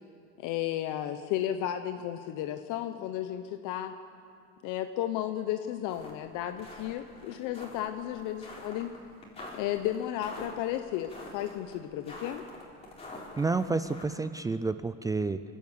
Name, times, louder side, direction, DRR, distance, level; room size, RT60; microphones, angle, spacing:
voice 1, 0.4-3.9 4.6-8.9 9.5-12.4, left 11 dB, 75° left, 8 dB, 1.0 m, -33 dB
sound 1, 5.9-6.1 6.5-14.0, left 2 dB, 20° left, 4.2 m, -46 dB
voice 2, 13.4-15.4, right 3 dB, 10° right, 12 dB, 0.4 m, -29 dB
28.0 x 12.5 x 8.3 m, 2.6 s
cardioid pair, 145°, 31 cm